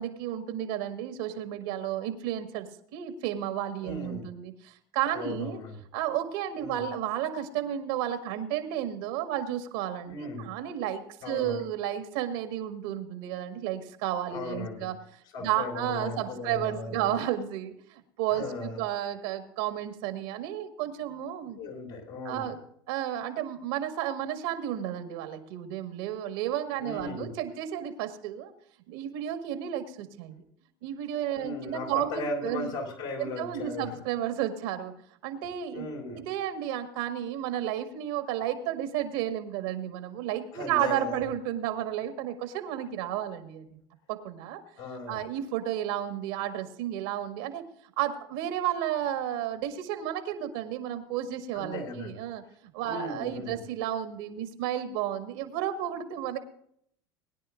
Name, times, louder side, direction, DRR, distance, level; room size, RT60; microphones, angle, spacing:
voice 1, 0.0-5.6 5.9-15.0 15.4-17.7 18.2-21.6 22.3-22.6 22.9-28.5 28.9-30.4 30.8-32.7 33.2-34.9 35.2-35.9 36.2-43.7 44.1-44.6 45.1-47.6 48.0-52.4 52.7-56.4, right 11 dB, 75° right, 6 dB, 1.8 m, -32 dB
voice 2, 3.8-4.3 5.1-5.8 6.6-6.8 10.1-10.5 11.2-11.6 14.3-14.9 15.3-17.1 18.3-18.8 21.6-22.5 26.8-27.3 31.4-34.0 35.7-36.3 40.5-41.2 44.8-45.3 51.5-52.2 52.8-53.6, left 2 dB, 75° left, -1 dB, 5.3 m, -37 dB
21.5 x 10.5 x 2.6 m, 0.66 s
hypercardioid pair, 85°, 12 cm